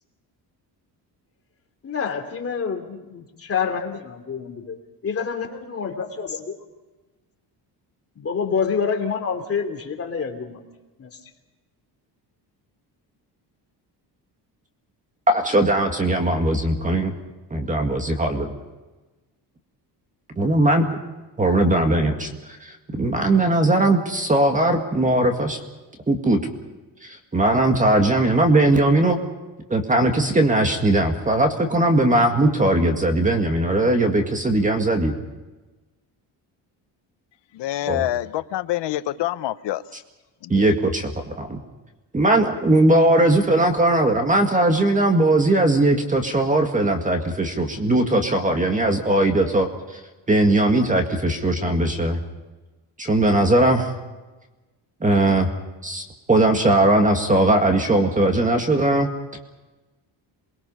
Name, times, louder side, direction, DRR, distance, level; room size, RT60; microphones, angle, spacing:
voice 1, 1.8-6.4 8.2-10.6 11.0-11.2, left 6 dB, 35° left, 2.9 m, -27 dB
voice 2, 15.3-17.1 17.5-18.5 20.4-20.9 21.4-22.3 22.6-25.6 26.1-26.4 27.0-29.2 29.7-35.1 37.9-38.1 40.5-41.6 42.1-49.7 50.3-52.2 53.0-53.9 55.0-55.5 55.8-59.1, right 1 dB, 20° right, 1.9 m, -19 dB
voice 3, 37.5-39.8 40.4-40.6, left 14 dB, 80° left, 1.0 m, -26 dB
28.0 x 21.0 x 5.6 m
cardioid pair, 145°, 42 cm